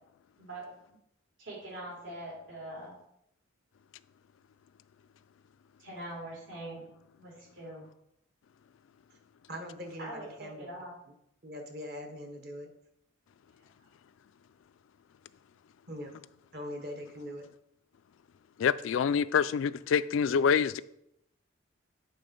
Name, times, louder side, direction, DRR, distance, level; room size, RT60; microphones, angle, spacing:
voice 1, 1.4-3.0 5.8-6.8 7.2-7.9 10.0-10.9, right 1 dB, 70° right, 2.6 m, -43 dB
voice 2, 9.5-10.7 11.4-12.7 15.9-16.1 16.5-17.4, equal, 50° right, 1.1 m, -41 dB
voice 3, 18.6-20.8, left 7 dB, 75° left, 0.3 m, -26 dB
8.5 x 3.8 x 5.2 m
head